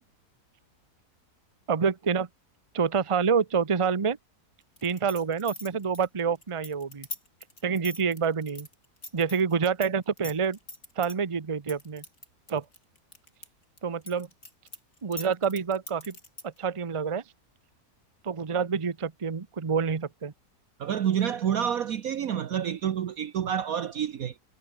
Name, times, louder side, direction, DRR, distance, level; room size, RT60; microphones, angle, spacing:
voice 1, 1.7-2.3 2.7-4.2 4.8-7.1 7.6-8.7 9.1-10.6 11.0-12.0 12.5-12.6 13.8-14.3 15.0-16.2 16.4-17.2 18.2-20.3, right 6 dB, 25° right, 0.8 m, -27 dB
sound 1, 4.8-9.9 10.2-11.1 11.7-13.5 13.8-16.6, left 2 dB, 55° left, 8.7 m, -41 dB
voice 2, 20.8-24.4, right 9 dB, 65° right, 1.4 m, -28 dB
omnidirectional pair, 1.7 m